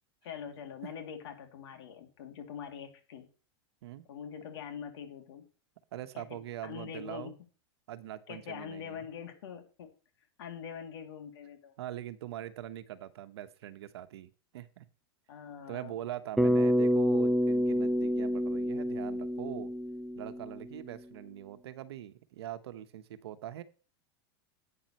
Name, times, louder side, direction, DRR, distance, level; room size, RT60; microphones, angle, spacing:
voice 1, 0.2-3.3 4.1-5.4 6.1-7.3 8.3-9.9 10.4-11.7 15.3-15.9 16.4-16.5, left 8 dB, 75° left, 5 dB, 2.6 m, -44 dB
voice 2, 5.9-7.4 7.9-9.1 11.8-14.9 15.7-19.7 20.1-23.6, right 12 dB, 80° right, 11 dB, 1.1 m, -42 dB
Bass guitar, 16.4-20.7, equal, ahead, 0.4 m, -28 dB
11.5 x 8.8 x 3.0 m, 0.37 s
supercardioid pair, 135°, 13 cm